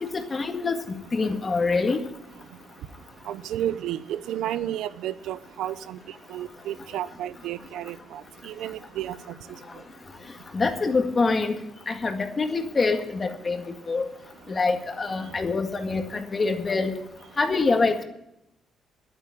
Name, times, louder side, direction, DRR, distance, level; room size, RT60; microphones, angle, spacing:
voice 1, 0.0-2.0 10.5-11.6 11.9-13.6 13.9-14.0 14.5-17.0 17.4-18.0, left 3 dB, 30° left, 6 dB, 1.9 m, -25 dB
voice 2, 3.3-6.0 6.3-9.4, right 11 dB, 85° right, 16 dB, 0.7 m, -32 dB
11.0 x 9.9 x 8.7 m, 0.83 s
cardioid pair, 90°, 0 cm